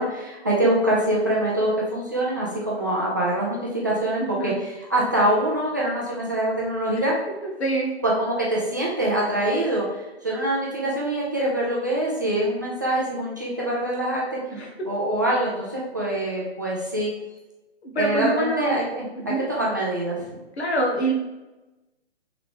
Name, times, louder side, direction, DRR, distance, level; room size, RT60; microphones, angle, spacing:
voice 1, 0.0-7.1 8.0-14.2 14.9-17.1 18.0-19.1 19.4-20.4, right 1 dB, 20° right, -6 dB, 0.3 m, -24 dB
voice 2, 4.2-4.6 7.0-7.1 7.6-7.9 14.5-14.7 17.8-18.8 19.2-19.4 20.6-21.1, right 1 dB, 70° left, 0 dB, 1.2 m, -25 dB
3.7 x 3.5 x 3.4 m, 1.1 s
figure-of-eight pair, 135°, 33 cm